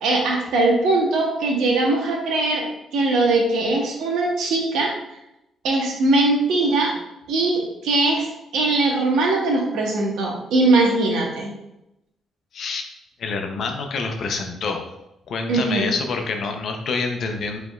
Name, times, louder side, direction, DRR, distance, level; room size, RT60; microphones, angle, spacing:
voice 1, 0.0-2.7 2.9-4.9 5.6-7.0 7.3-8.3 8.5-11.5 15.5-15.9, right 2 dB, 80° right, 0 dB, 1.0 m, -20 dB
voice 2, 12.5-12.9 13.2-14.8 15.3-17.6, left 4 dB, 60° left, 4 dB, 0.6 m, -27 dB
5.0 x 3.4 x 2.3 m, 0.87 s
cardioid pair, 90°, 0 cm